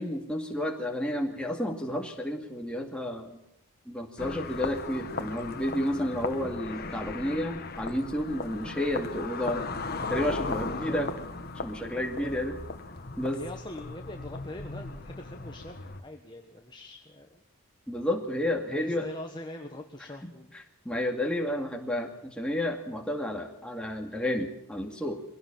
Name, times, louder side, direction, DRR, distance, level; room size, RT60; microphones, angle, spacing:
voice 1, 0.0-3.4 3.9-9.7 10.1-11.1 11.6-12.6 13.2-13.4 17.9-19.1 20.8-25.2, left 1 dB, 5° left, 1 dB, 2.4 m, -31 dB
sound 1, 4.2-16.0, left 3 dB, 45° left, 1.5 m, -37 dB
sound 2, 5.2-6.7 7.9-10.2, right 2 dB, 80° right, 3.4 m, -48 dB
voice 2, 10.7-11.3 12.0-12.6 13.3-17.4 18.7-20.5, left 1 dB, 20° left, 3 dB, 1.3 m, -43 dB
22.5 x 17.0 x 7.4 m, 0.80 s
head